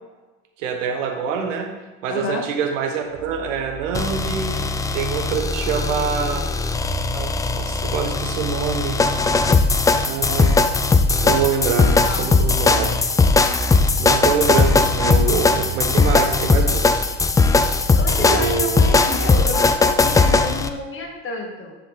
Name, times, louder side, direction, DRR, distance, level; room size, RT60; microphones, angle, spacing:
voice 1, 0.6-1.7 2.0-4.6 4.9-6.4 7.1-9.0 10.1-10.6 11.2-13.0 14.0-17.1 18.2-18.8, right 6 dB, 90° right, 4 dB, 1.2 m, -25 dB
voice 2, 2.1-2.5 4.5-4.8 12.0-12.3 17.9-21.8, left 3 dB, 35° left, 1 dB, 1.9 m, -30 dB
sound 1, 3.1-19.9, right 5 dB, 60° right, 1.8 m, -38 dB
sound 2, 3.9-20.7, left 3 dB, 10° left, 0.3 m, -18 dB
10.5 x 5.0 x 3.9 m, 1.2 s
supercardioid pair, 100°, 36 cm